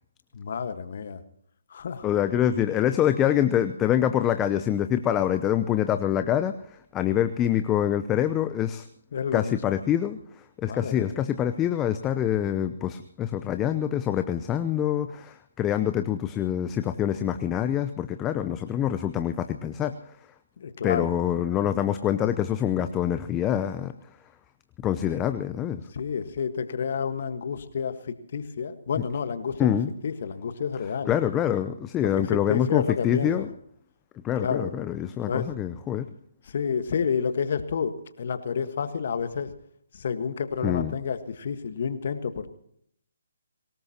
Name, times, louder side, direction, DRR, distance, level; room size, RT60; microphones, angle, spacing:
voice 1, 0.3-1.2 1.7-2.0 9.1-9.6 10.7-11.2 20.6-21.1 25.9-27.9 28.3-29.8 30.0-31.1 32.0-33.5 34.4-34.7 35.3-35.4 36.5-37.9 38.2-39.5 39.9-42.5, left 6 dB, 50° left, 10 dB, 1.5 m, -29 dB
voice 2, 2.0-8.9 9.3-19.9 20.8-23.9 24.8-25.8 29.6-29.9 31.1-33.5 34.2-36.1 40.6-40.9, left 10 dB, 15° left, 9 dB, 0.7 m, -25 dB
24.5 x 18.5 x 3.0 m, 0.69 s
figure-of-eight pair, 140°, 0 cm